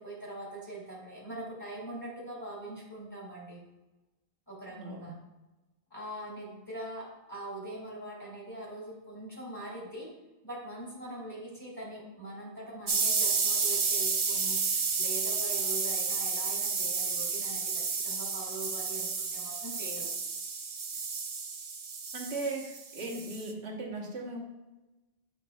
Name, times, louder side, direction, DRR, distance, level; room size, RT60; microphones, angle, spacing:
voice 1, 0.0-3.6 4.5-5.2 5.9-20.1, right 1 dB, 20° left, -5 dB, 2.5 m, -42 dB
voice 2, 4.7-5.1 22.1-24.4, right 2 dB, 80° right, -2 dB, 1.5 m, -37 dB
sound 1, 12.9-23.5, right 5 dB, 40° right, 0.4 m, -31 dB
9.0 x 5.8 x 2.3 m, 1.1 s
omnidirectional pair, 1.1 m